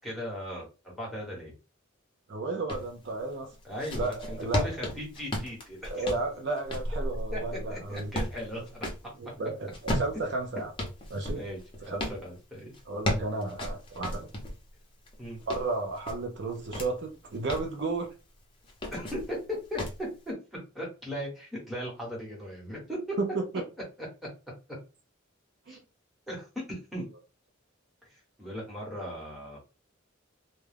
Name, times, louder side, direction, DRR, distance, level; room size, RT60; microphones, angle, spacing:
voice 1, 0.0-1.5 3.6-6.1 7.3-7.4 7.7-8.9 11.3-11.6 11.9-12.7 15.2-15.4 18.9-20.3 20.7-23.2 25.7-25.8 26.3-27.0 28.1-29.7, equal, ahead, 1.1 m, -38 dB
voice 2, 2.3-3.5 4.0-4.7 5.9-8.1 9.2-10.7 11.1-11.4 11.9-12.0 12.9-14.3 15.5-18.1 23.2-23.6 25.7-25.8, right 3 dB, 60° right, 0.5 m, -33 dB
sound 1, 2.7-2.9 3.5-9.1 9.7-12.2 12.7-14.6 15.1-16.9 17.3-17.7 18.6-19.3 19.8-20.0, left 1 dB, 25° left, 0.7 m, -34 dB
2.3 x 2.2 x 3.3 m
head